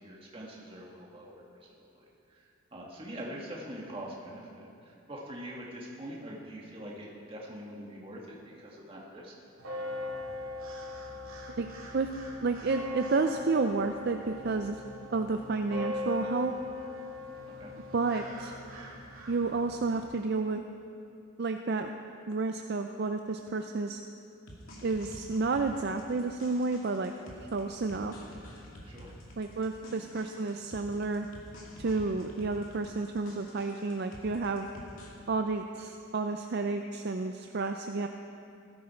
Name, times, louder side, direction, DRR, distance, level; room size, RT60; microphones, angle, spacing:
voice 1, 0.0-9.3 17.5-17.7 28.8-29.1 29.8-30.1, equal, 25° right, -3 dB, 2.0 m, -44 dB
sound 1, 9.6-20.0, left 2 dB, 75° right, 2.5 m, -40 dB
voice 2, 12.4-14.8 15.1-16.5 17.9-18.5 19.3-20.6 21.4-21.9 22.3-24.0 24.8-27.1 27.5-28.1 29.4-31.3 31.8-34.7 35.3-38.1, right 3 dB, 50° right, 6 dB, 0.4 m, -31 dB
sound 2, 24.5-35.1, equal, 75° left, 2.3 m, -49 dB
15.5 x 12.5 x 4.4 m, 2.6 s
head